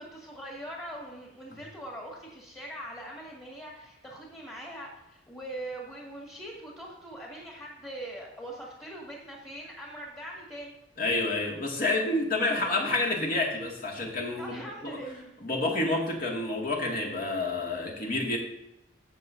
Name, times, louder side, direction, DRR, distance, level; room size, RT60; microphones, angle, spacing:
voice 1, 0.0-10.7 14.4-15.3 18.0-18.1, right 1 dB, 20° left, -3 dB, 2.1 m, -42 dB
voice 2, 11.0-14.6 14.8-15.0 15.4-18.4, left 2 dB, 50° left, -1 dB, 2.2 m, -29 dB
17.0 x 6.1 x 2.7 m, 0.88 s
head